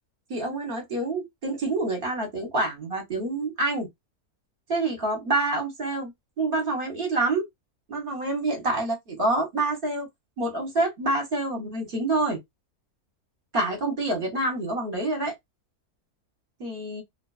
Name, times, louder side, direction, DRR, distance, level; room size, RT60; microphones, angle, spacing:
voice 1, 0.3-3.9 4.7-6.1 6.4-7.5 7.9-10.1 10.4-12.4 13.5-15.3 16.6-17.0, right 2 dB, 45° right, 0.8 m, -27 dB
2.4 x 2.3 x 2.3 m
omnidirectional pair, 1.6 m